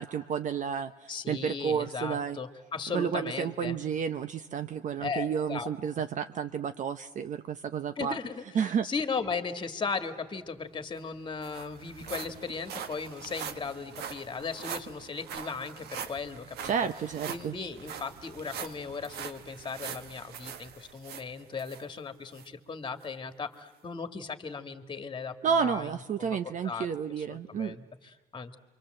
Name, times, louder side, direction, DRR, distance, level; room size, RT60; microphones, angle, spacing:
voice 1, 0.0-2.4 2.9-8.2 8.5-8.9 16.7-17.5 25.4-27.8, right 7 dB, 50° right, 10 dB, 0.8 m, -31 dB
voice 2, 1.1-3.8 5.0-5.7 8.0-16.7 17.3-25.9 26.2-26.4 26.6-26.9 27.2-28.6, left 5 dB, 30° left, 9 dB, 1.9 m, -37 dB
sound 1, 10.6-10.7 11.0-21.8 22.3-22.5 23.0-23.1, right 8 dB, 75° right, 1.5 m, -42 dB
28.0 x 24.5 x 7.7 m, 1.2 s
cardioid pair, 110°, 17 cm